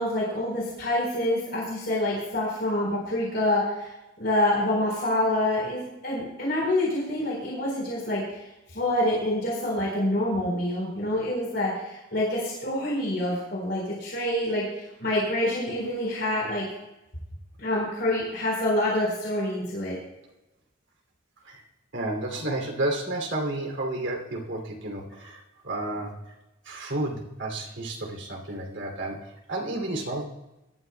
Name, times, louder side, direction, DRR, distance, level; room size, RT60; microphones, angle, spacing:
voice 1, 0.0-3.9 4.2-8.4 8.7-16.7 17.6-20.0, left 1 dB, 55° left, -4 dB, 4.2 m, -27 dB
voice 2, 21.9-26.3 26.6-30.2, right 1 dB, 70° right, 2 dB, 2.8 m, -31 dB
21.0 x 12.5 x 2.2 m, 0.99 s
head